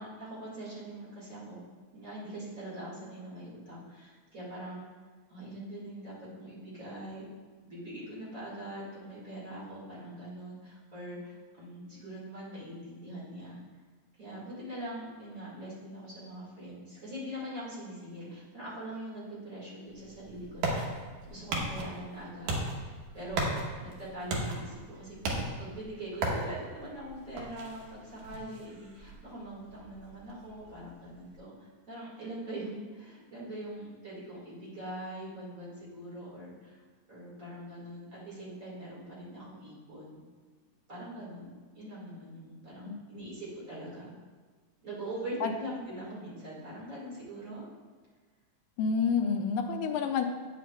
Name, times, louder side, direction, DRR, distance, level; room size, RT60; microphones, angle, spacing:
voice 1, 0.0-1.6 1.9-4.8 5.3-7.2 7.6-13.6 14.2-20.8 21.2-25.1 25.6-40.2 40.9-44.1 44.8-47.6, right 1 dB, 35° right, -8 dB, 1.8 m, -42 dB
sound 1, 19.9-31.4, right 2 dB, 90° right, 2.6 m, -37 dB
voice 2, 48.8-50.2, left 6 dB, 80° left, 6 dB, 1.9 m, -28 dB
8.9 x 7.3 x 2.3 m, 1.5 s
omnidirectional pair, 3.7 m